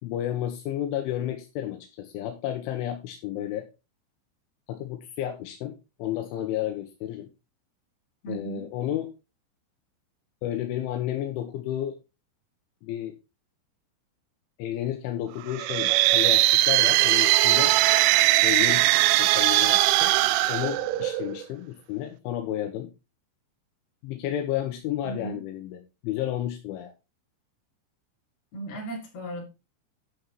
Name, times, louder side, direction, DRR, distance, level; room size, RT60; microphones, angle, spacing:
voice 1, 0.0-3.7 4.7-7.3 8.3-9.1 10.4-12.0 12.8-13.2 14.6-17.7 18.4-20.1 20.5-22.9 24.0-26.9, left 12 dB, 85° left, 3.5 m, -32 dB
voice 2, 8.2-8.6 25.0-25.4 28.5-29.4, right 2 dB, 55° left, 5.0 m, -36 dB
sound 1, 15.5-21.4, right 17 dB, 85° right, 3.0 m, -20 dB
11.5 x 6.3 x 4.2 m
omnidirectional pair, 5.5 m